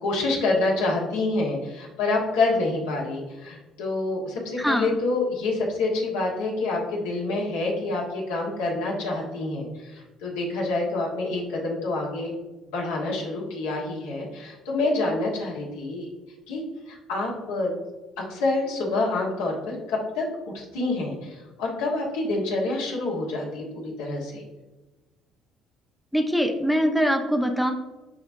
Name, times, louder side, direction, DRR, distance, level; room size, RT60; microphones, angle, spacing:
voice 1, 0.0-12.3 12.7-16.1 16.5-17.7 18.3-20.2 20.5-24.4, left 2 dB, 75° left, -3 dB, 1.6 m, -27 dB
voice 2, 4.6-5.0 26.1-27.7, equal, ahead, 3 dB, 0.8 m, -23 dB
10.5 x 3.5 x 2.7 m, 1.2 s
hypercardioid pair, 50°, 0 cm